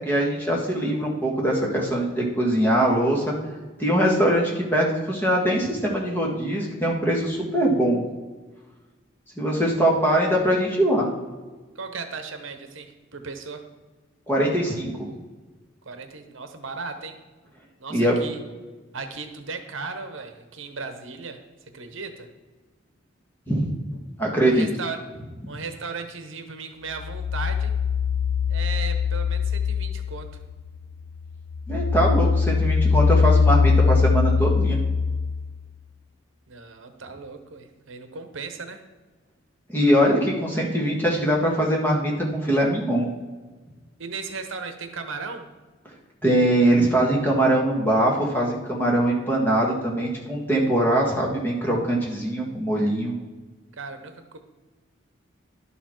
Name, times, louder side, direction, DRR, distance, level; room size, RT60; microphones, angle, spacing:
voice 1, 0.1-3.3 3.8-8.0 9.4-11.1 14.3-15.1 17.9-18.2 23.5-23.7 24.2-24.7 31.7-34.8 39.7-43.1 46.2-53.2, right 1 dB, 10° left, -2 dB, 1.7 m, -22 dB
voice 2, 11.7-13.6 15.8-17.2 17.8-18.4 18.9-21.4 21.7-22.3 24.4-25.0 25.5-27.7 28.5-30.4 36.5-38.8 44.0-45.5 53.8-54.4, right 4 dB, 70° right, 7 dB, 1.0 m, -36 dB
sound 1, 27.0-30.8 31.2-35.8, left 5 dB, 65° left, 0.4 m, -22 dB
11.5 x 7.0 x 4.5 m, 1.3 s
head